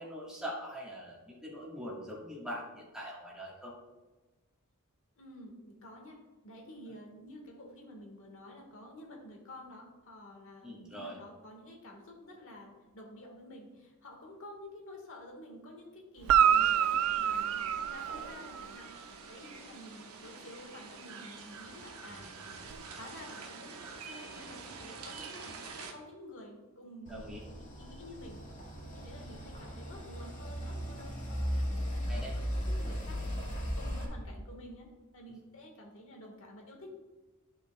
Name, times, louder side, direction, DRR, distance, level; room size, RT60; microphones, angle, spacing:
voice 1, 0.0-3.7 10.6-11.2 27.1-27.4 32.1-32.3, equal, 5° right, -6 dB, 1.3 m, -42 dB
voice 2, 5.2-22.3 22.9-23.8 24.0-28.4 28.8-33.4 33.7-36.9, left 1 dB, 65° left, 1 dB, 1.4 m, -50 dB
Guitar, 16.2-18.8 22.7-22.8, right 9 dB, 70° right, 0.3 m, -27 dB
sound 1, 16.3-25.9, right 4 dB, 85° right, 0.9 m, -47 dB
sound 2, 27.1-34.1, equal, 35° left, 1.7 m, -37 dB
11.0 x 5.5 x 2.2 m, 1.1 s
head